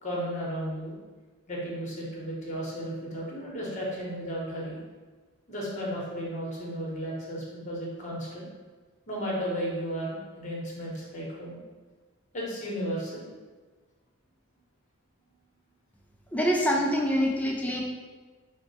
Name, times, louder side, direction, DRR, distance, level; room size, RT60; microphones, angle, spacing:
voice 1, 0.0-0.9 1.5-4.8 5.5-8.4 9.1-11.6 12.3-13.3, equal, 35° left, -4 dB, 0.9 m, -34 dB
voice 2, 16.3-17.8, equal, 5° left, 0 dB, 0.4 m, -25 dB
4.2 x 2.1 x 4.0 m, 1.4 s
head